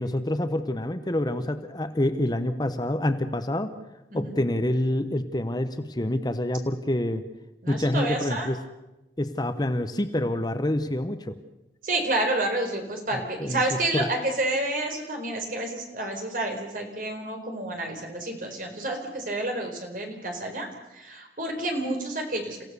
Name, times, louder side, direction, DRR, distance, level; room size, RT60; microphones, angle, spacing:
voice 1, 0.0-3.7 4.1-7.2 7.7-8.6 9.2-11.4 13.4-13.6 13.9-14.0, left 1 dB, 25° left, 10 dB, 0.9 m, -27 dB
voice 2, 7.6-8.5 11.8-22.6, right 2 dB, 50° right, 3 dB, 4.4 m, -29 dB
29.5 x 16.0 x 6.8 m, 0.99 s
head